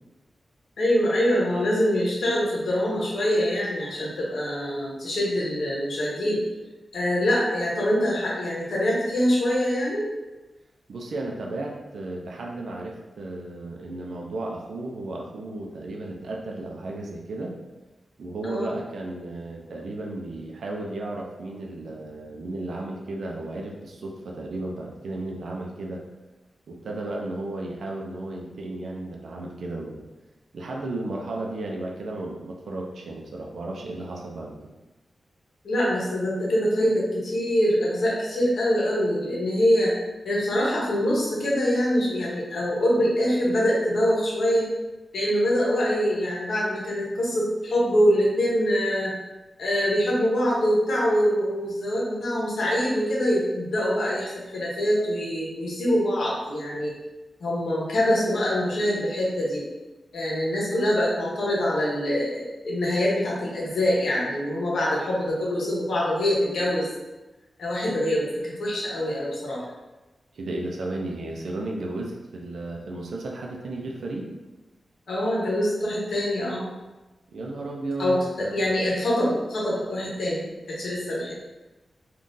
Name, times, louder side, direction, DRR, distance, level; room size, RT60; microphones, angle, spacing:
voice 1, 0.8-6.4 6.9-10.1 18.4-18.7 35.6-39.9 40.2-44.7 45.1-49.1 49.6-56.9 57.4-59.6 60.1-66.9 67.6-69.6 75.1-76.7 78.0-81.3, equal, 80° left, -5 dB, 0.9 m, -24 dB
voice 2, 10.9-17.6 18.2-26.0 26.7-30.0 30.5-34.6 70.3-74.4 77.3-78.6, right 2 dB, 75° right, 0 dB, 0.5 m, -34 dB
3.7 x 2.4 x 2.6 m, 1.1 s
wide cardioid pair, 180°, 0 cm